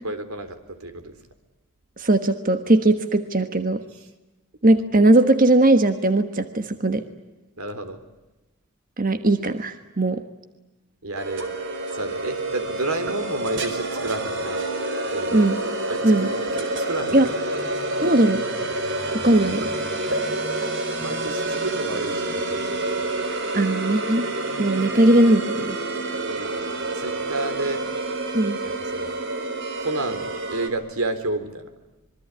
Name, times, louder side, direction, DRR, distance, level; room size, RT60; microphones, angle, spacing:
voice 1, 0.0-1.2 7.6-8.0 11.0-11.5 11.9-14.6 15.1-15.5 15.9-17.2 17.6-17.7 21.0-23.1 26.3-26.5 26.9-27.8 28.6-29.1 29.8-31.7, right 2 dB, 85° right, 10 dB, 3.8 m, -31 dB
voice 2, 2.0-3.8 4.6-7.0 9.0-10.2 15.3-15.6 16.0-16.3 17.1-17.3 18.0-18.4 19.1-19.7 23.5-24.3 24.6-25.8 28.3-28.6, right 1 dB, 40° right, 9 dB, 1.4 m, -19 dB
sound 1, 11.2-30.7, right 2 dB, 60° right, 4.3 m, -28 dB
26.5 x 23.5 x 9.6 m, 1.0 s
head